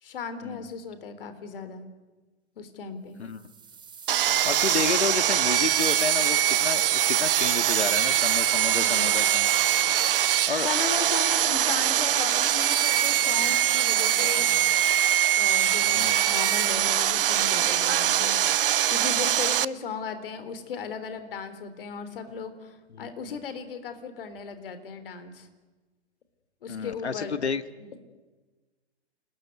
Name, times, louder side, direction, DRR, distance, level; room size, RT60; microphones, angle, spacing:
voice 1, 0.0-1.9 2.6-3.2 8.7-9.1 10.3-14.5 15.4-25.5 26.6-27.4 27.8-27.9, left 5 dB, 55° left, 11 dB, 3.9 m, -37 dB
sound 1, 3.3-6.5, right 6 dB, 15° right, 3.6 m, -41 dB
Sawing, 4.1-19.6, right 11 dB, 55° right, 0.8 m, -23 dB
voice 2, 4.4-9.5 10.5-10.7 15.9-16.2 22.9-23.1 26.7-27.6, left 5 dB, 75° left, 13 dB, 1.7 m, -31 dB
28.5 x 21.0 x 9.6 m, 1.2 s
figure-of-eight pair, 110°, 33 cm